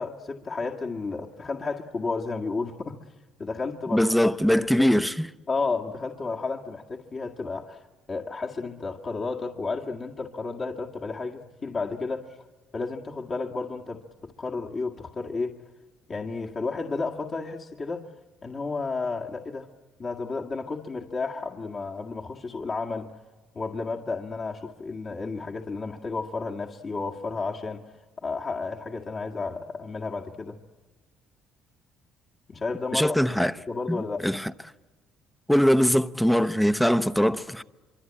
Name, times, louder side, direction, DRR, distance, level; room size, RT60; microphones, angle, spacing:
voice 1, 0.0-3.0 3.4-4.9 5.5-12.4 12.7-15.6 16.1-18.1 18.4-19.7 20.0-23.1 23.5-27.8 28.2-30.6 32.5-33.2 33.7-34.3, left 4 dB, 35° left, 1.9 m, -32 dB
voice 2, 3.9-5.3 32.9-33.5 33.9-34.5 35.5-37.6, equal, 5° left, 0.8 m, -22 dB
25.0 x 24.5 x 8.8 m
supercardioid pair, 85°, 0 cm